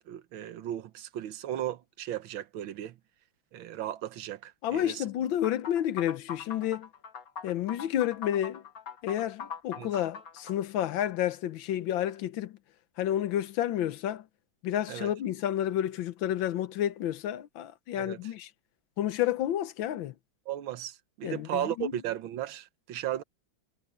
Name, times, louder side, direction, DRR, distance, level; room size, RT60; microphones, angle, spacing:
voice 1, 0.1-3.0 3.5-5.0 9.8-9.9 14.9-15.1 18.0-18.2 20.5-23.2, right 12 dB, 80° right, 1.7 m, -35 dB
voice 2, 4.6-6.9 7.4-8.6 9.0-12.6 13.0-14.2 14.6-18.5 19.0-20.1 21.2-21.9, left 11 dB, 75° left, 1.5 m, -30 dB
sound 1, 5.4-10.6, left 7 dB, 50° left, 1.6 m, -42 dB
omnidirectional pair, 2.2 m